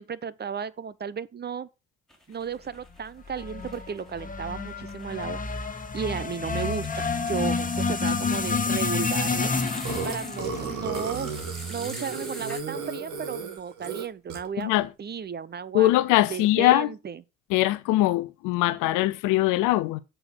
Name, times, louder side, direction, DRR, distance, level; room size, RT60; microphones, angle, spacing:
voice 1, 0.0-1.7 2.3-9.5 10.0-11.3 11.7-14.7 15.0-15.9 16.3-17.2, right 7 dB, 30° right, 0.7 m, -34 dB
sound 1, 2.1-3.1 3.4-12.6, equal, ahead, 2.9 m, -44 dB
sound 2, 3.3-11.6, left 4 dB, 25° left, 1.3 m, -29 dB
Burping eructation, 9.8-14.6, right 5 dB, 60° right, 1.8 m, -34 dB
voice 2, 14.6-14.9 15.7-16.9 17.5-20.0, left 16 dB, 60° left, 0.7 m, -22 dB
7.7 x 4.6 x 6.2 m
figure-of-eight pair, 45°, 35 cm